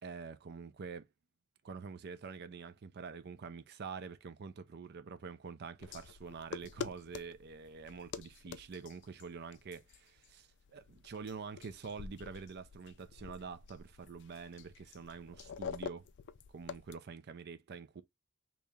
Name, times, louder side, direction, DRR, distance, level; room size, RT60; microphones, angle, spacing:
voice 1, 0.0-1.1 1.6-16.1 16.5-18.0, right 5 dB, 50° right, 0.4 m, -46 dB
sound 1, 5.8-16.9, left 6 dB, 55° left, 0.3 m, -47 dB
3.0 x 2.8 x 3.5 m
head